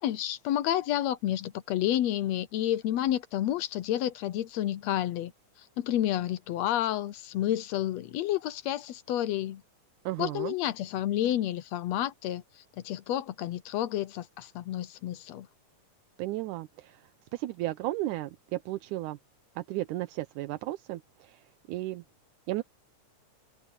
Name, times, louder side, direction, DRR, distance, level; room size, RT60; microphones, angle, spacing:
voice 1, 0.0-5.3 5.8-9.6 10.2-12.4 12.8-15.5, left 12 dB, 70° left, 1.8 m, -30 dB
voice 2, 10.1-10.6 16.2-17.0 17.3-19.2 19.6-22.0 22.5-22.6, right 16 dB, 85° right, 2.2 m, -34 dB
omnidirectional pair, 3.5 m